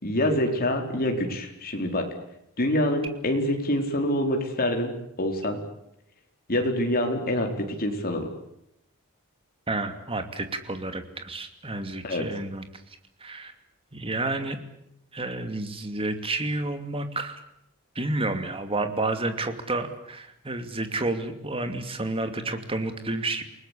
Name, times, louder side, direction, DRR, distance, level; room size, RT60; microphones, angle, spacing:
voice 1, 0.0-2.1 2.6-5.6 6.5-8.3 12.0-12.2, left 1 dB, 45° left, 3 dB, 4.6 m, -26 dB
voice 2, 9.7-12.6 13.2-13.5 13.9-14.6 15.1-17.4 17.9-23.4, right 2 dB, 25° right, 8 dB, 2.7 m, -30 dB
29.0 x 19.5 x 8.6 m, 0.79 s
head